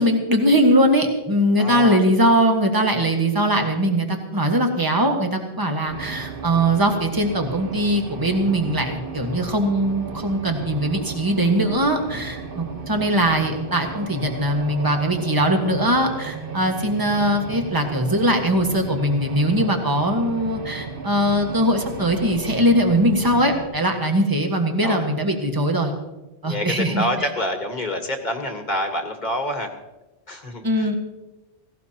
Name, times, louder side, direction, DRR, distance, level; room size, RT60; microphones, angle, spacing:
voice 1, 0.0-25.9 26.4-27.3 30.6-30.9, equal, 20° right, 3 dB, 1.5 m, -21 dB
voice 2, 1.6-2.0 24.8-25.0 26.4-29.7 30.3-30.9, left 1 dB, 45° left, 5 dB, 1.5 m, -27 dB
sound 1, 5.9-23.6, right 4 dB, 55° right, 1.3 m, -35 dB
17.5 x 17.0 x 2.9 m, 1.0 s
omnidirectional pair, 1.1 m